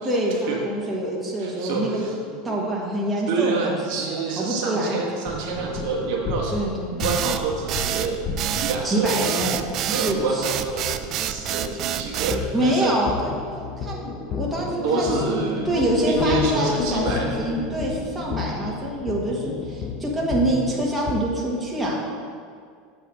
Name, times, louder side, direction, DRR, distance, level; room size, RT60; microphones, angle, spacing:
voice 1, 0.0-2.0 2.3-3.8 4.1-5.0 6.5-7.1 8.8-9.6 9.9-10.5 12.5-15.1 15.6-22.0, right 1 dB, 10° right, -4 dB, 1.4 m, -26 dB
voice 2, 1.4-2.1 2.5-2.6 3.3-6.6 7.0-8.2 8.6-9.3 9.9-13.0 14.8-17.3, right 4 dB, 65° right, -1 dB, 1.3 m, -27 dB
sound 1, 5.3-9.0 12.1-21.2, left 5 dB, 40° left, 0.6 m, -31 dB
sound 2, 7.0-12.4, right 11 dB, 45° right, 0.3 m, -27 dB
8.3 x 3.5 x 6.0 m, 2.1 s
supercardioid pair, 125°, 0 cm